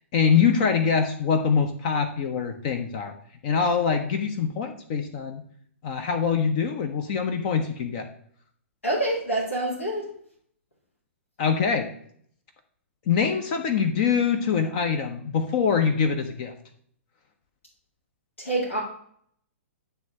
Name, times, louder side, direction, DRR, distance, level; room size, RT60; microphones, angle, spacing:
voice 1, 0.1-3.1 3.4-5.4 5.8-8.1 11.4-11.9 13.1-16.5, left 6 dB, 40° left, 6 dB, 0.8 m, -24 dB
voice 2, 8.8-10.1 18.4-18.8, right 1 dB, 70° left, -5 dB, 2.4 m, -26 dB
9.2 x 3.4 x 6.6 m, 0.64 s
figure-of-eight pair, 115°, 7 cm